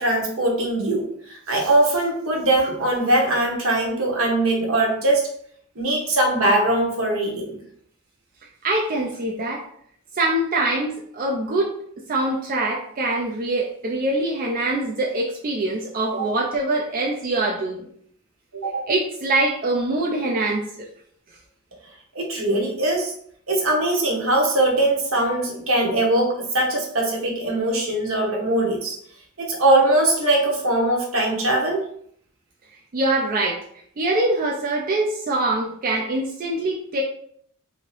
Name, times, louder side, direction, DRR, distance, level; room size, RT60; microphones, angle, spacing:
voice 1, 0.0-5.2 5.8-7.6 18.5-18.7 22.1-23.1 23.5-29.0 29.4-31.8, right 1 dB, 75° right, -1 dB, 0.9 m, -21 dB
voice 2, 8.6-9.6 10.1-11.7 12.1-17.8 18.6-20.6 32.9-33.6 34.0-37.0, right 2 dB, 40° right, -1 dB, 0.4 m, -24 dB
2.9 x 2.7 x 3.1 m, 0.65 s
head